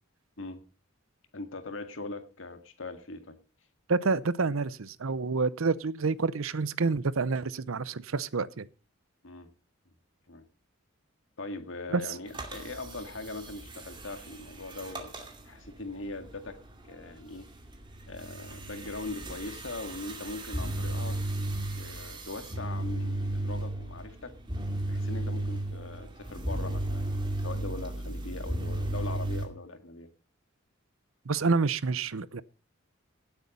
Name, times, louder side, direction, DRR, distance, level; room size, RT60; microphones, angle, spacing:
voice 1, 1.3-3.4 9.2-9.5 10.3-10.4 11.4-15.1 15.5-16.6 16.8-17.5 18.1-21.2 21.8-24.3 24.9-30.1, left 2 dB, 70° left, 1.9 m, -41 dB
voice 2, 3.9-8.7 11.9-12.0 31.3-32.4, right 4 dB, 80° right, 0.7 m, -28 dB
sound 1, 12.3-29.5, right 1 dB, 20° right, 2.5 m, -35 dB
17.0 x 8.1 x 5.4 m
head